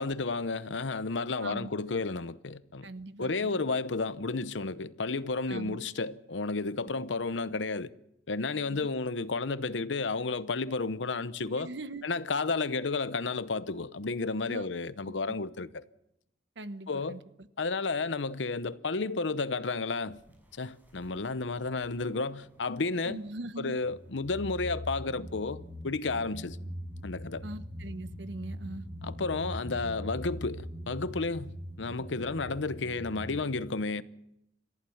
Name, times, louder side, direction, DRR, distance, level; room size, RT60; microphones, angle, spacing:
voice 1, 0.0-2.9 3.2-7.9 8.3-11.7 12.0-15.8 16.9-17.2 17.6-20.2 20.6-23.2 23.6-26.6 27.0-27.5 29.0-34.0, left 3 dB, 80° left, 0.8 m, -32 dB
voice 2, 1.4-1.7 2.8-3.5 5.5-5.8 8.7-8.8 11.6-12.1 14.5-14.7 16.6-17.2 23.1-23.8 27.4-28.9, right 2 dB, 70° right, 1.1 m, -41 dB
sound 1, 20.2-20.4 20.8-22.0 22.3-23.3 23.8-33.5, equal, 10° right, 6.2 m, -42 dB
28.0 x 15.0 x 7.1 m
head